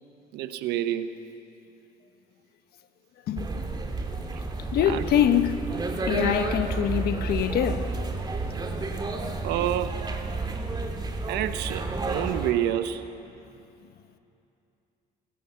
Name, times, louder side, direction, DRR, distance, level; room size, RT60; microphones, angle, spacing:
voice 1, 0.3-1.2 4.9-5.0 6.1-6.4 9.4-10.0 11.3-13.0, right 11 dB, 90° right, 1.1 m, -28 dB
sound 1, 3.4-12.5, right 3 dB, 25° right, 2.4 m, -31 dB
voice 2, 4.7-5.7 6.1-7.9, left 10 dB, 70° left, 1.3 m, -24 dB
28.0 x 17.0 x 7.2 m
cardioid pair, 110°, 17 cm